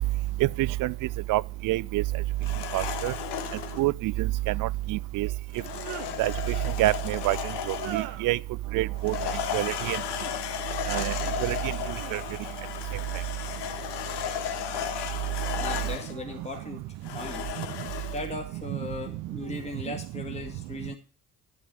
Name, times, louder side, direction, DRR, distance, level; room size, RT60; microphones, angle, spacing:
voice 1, 0.6-0.9 1.3-2.0 2.7-3.1 3.8-4.3 4.6-5.3 6.2-6.3 6.8-7.4 7.9-8.4 8.7-9.1 9.5-10.0 10.9-11.1 11.4-11.6 12.1-12.2, right 18 dB, 45° right, 0.4 m, -26 dB
sound 1, 0.9-1.0 3.3-3.9 5.4-6.1 7.7-8.4 9.9-10.4 10.9-11.4 11.8-12.7 13.9-14.5 15.2-17.2 18.3-18.7 19.3-19.9, right 13 dB, 65° right, 1.0 m, -44 dB
sound 2, 2.4-3.8 5.5-8.1 9.0-16.2 17.0-18.3, left 9 dB, 60° left, 1.4 m, -34 dB
voice 2, 15.6-16.8 17.1-17.5 18.0-20.9, left 2 dB, 15° left, 2.0 m, -37 dB
11.0 x 6.2 x 4.9 m
figure-of-eight pair, 50°, 48 cm